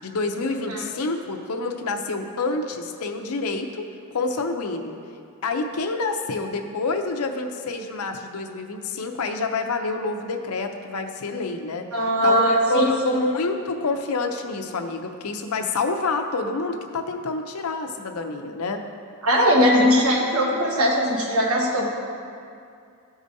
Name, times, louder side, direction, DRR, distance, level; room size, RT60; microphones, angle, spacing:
voice 1, 0.0-3.9 4.1-5.0 5.4-11.9 12.2-12.4 12.7-18.8, left 3 dB, 85° left, 4 dB, 0.7 m, -27 dB
voice 2, 11.9-12.9 19.2-21.9, equal, 80° right, -2 dB, 1.3 m, -20 dB
13.5 x 4.9 x 2.7 m, 2.4 s
head